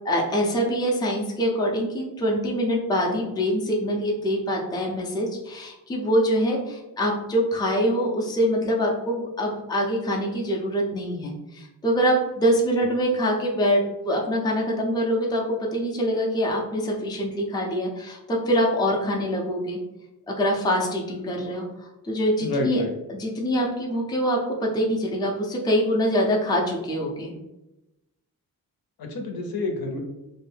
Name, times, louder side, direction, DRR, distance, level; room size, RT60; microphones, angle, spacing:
voice 1, 0.0-19.8 20.3-22.8 23.1-27.3, equal, 10° left, -1 dB, 0.4 m, -24 dB
voice 2, 22.4-22.9 29.0-30.0, left 2 dB, 80° left, 3 dB, 0.7 m, -28 dB
2.6 x 2.1 x 3.2 m, 0.95 s
wide cardioid pair, 165°, 36 cm